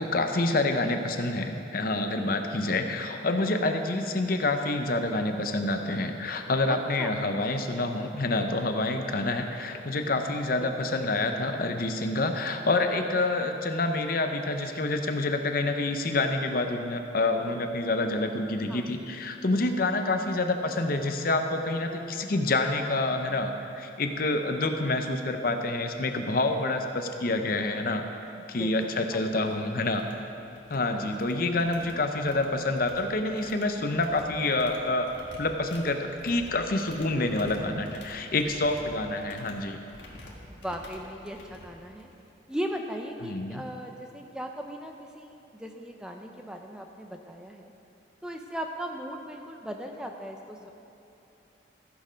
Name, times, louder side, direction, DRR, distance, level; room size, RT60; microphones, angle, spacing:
voice 1, 0.0-23.5 23.7-28.0 28.5-30.0 30.7-35.1 35.4-39.8 43.2-43.6, left 2 dB, 50° left, 5 dB, 0.7 m, -27 dB
sound 1, 28.2-28.3 28.7-28.9 29.2-29.5 29.8-30.8 31.1-42.3, left 1 dB, 70° left, 1.7 m, -49 dB
voice 2, 28.3-29.7 30.9-31.3 40.5-42.1 42.5-47.7 48.2-50.7, equal, 5° right, 3 dB, 0.5 m, -38 dB
15.0 x 6.7 x 5.1 m, 2.9 s
head